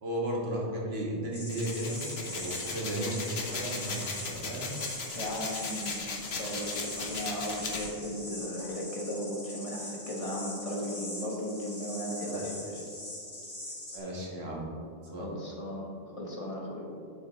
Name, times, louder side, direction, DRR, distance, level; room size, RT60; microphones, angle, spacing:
voice 1, 0.0-4.7 12.2-12.4 13.9-14.7 15.1-15.3, right 1 dB, 75° right, -3 dB, 1.8 m, -34 dB
sound 1, 1.3-14.0, left 1 dB, 65° left, 2.5 m, -42 dB
sound 2, 1.5-7.8, left 4 dB, 80° left, 1.2 m, -37 dB
voice 2, 5.1-12.8 15.2-16.8, equal, 35° left, -3 dB, 1.3 m, -36 dB
8.5 x 7.9 x 3.2 m, 2.4 s
omnidirectional pair, 1.1 m